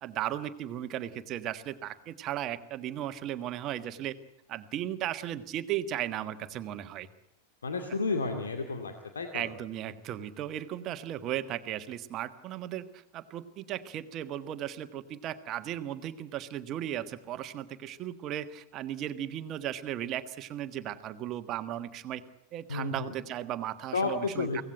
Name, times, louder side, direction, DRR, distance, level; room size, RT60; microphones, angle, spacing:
voice 1, 0.0-4.2 4.5-7.1 9.3-22.2 22.5-24.6, right 11 dB, 35° right, 11 dB, 1.5 m, -36 dB
voice 2, 7.6-9.5 22.7-23.2 23.9-24.6, left 4 dB, 70° left, 5 dB, 2.2 m, -32 dB
24.5 x 17.5 x 9.0 m, 0.78 s
figure-of-eight pair, 90°, 0 cm